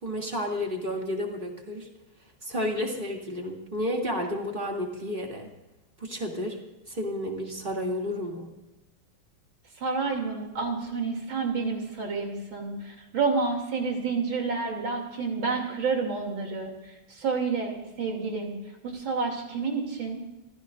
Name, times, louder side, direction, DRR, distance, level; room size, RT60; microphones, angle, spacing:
voice 1, 0.0-1.9 2.4-5.5 6.0-6.6 6.9-8.5, left 1 dB, 25° right, 0 dB, 2.8 m, -31 dB
voice 2, 9.8-18.6 18.8-20.2, right 4 dB, 75° right, 1 dB, 3.7 m, -29 dB
27.5 x 15.5 x 2.6 m, 1.0 s
omnidirectional pair, 2.2 m